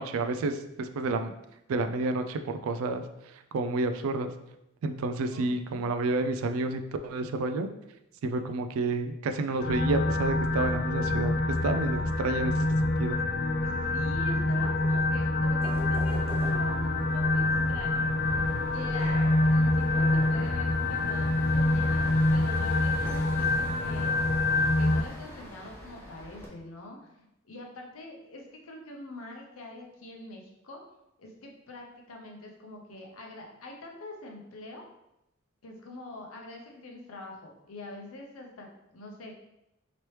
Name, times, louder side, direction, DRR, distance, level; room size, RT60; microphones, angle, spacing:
voice 1, 0.0-1.3 1.7-3.0 3.5-4.3 4.8-7.7 8.2-11.3 11.6-13.2, right 3 dB, 80° right, 8 dB, 0.3 m, -30 dB
voice 2, 5.3-6.0 13.0-13.1 13.6-18.4 18.7-24.1 24.8-30.8 31.2-34.8 35.6-39.3, left 2 dB, 85° left, 1 dB, 0.7 m, -45 dB
sound 1, 9.6-25.0, left 2 dB, 45° left, 0.3 m, -26 dB
sound 2, 15.6-22.7, equal, 30° right, 0.7 m, -43 dB
sound 3, 18.2-26.5, equal, 10° left, 0.6 m, -44 dB
3.0 x 3.0 x 3.1 m, 0.85 s
head